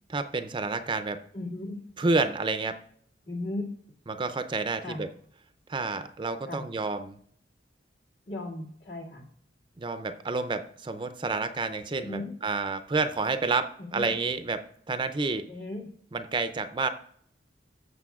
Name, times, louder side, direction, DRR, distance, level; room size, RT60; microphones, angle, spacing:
voice 1, 0.1-1.2 2.0-2.8 4.1-5.1 5.7-7.2 9.8-15.5 16.1-16.9, right 3 dB, 25° right, 10 dB, 0.5 m, -29 dB
voice 2, 1.3-1.8 3.3-3.7 4.8-5.0 6.5-6.6 8.3-9.3 12.0-12.3 13.8-14.1 15.5-15.9, left 2 dB, 70° left, -2 dB, 2.1 m, -36 dB
14.5 x 7.0 x 2.4 m, 0.62 s
head